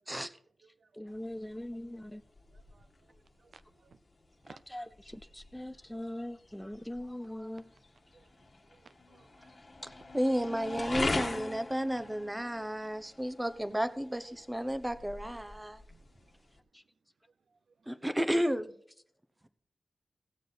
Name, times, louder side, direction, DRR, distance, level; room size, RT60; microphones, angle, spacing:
voice 1, 1.0-2.2 4.7-7.7, left 1 dB, 5° left, 0.4 m, -41 dB
sound 1, 1.1-16.6, left 2 dB, 40° left, 1.5 m, -42 dB
voice 2, 2.5-2.9 3.4-4.0 4.4-4.6 8.1-8.3 8.7-9.6 15.9-16.1, right 5 dB, 70° right, 0.5 m, -58 dB
voice 3, 9.8-15.8 17.9-18.8, equal, 10° right, 0.8 m, -32 dB
17.0 x 6.6 x 4.1 m
cardioid pair, 75°, 0 cm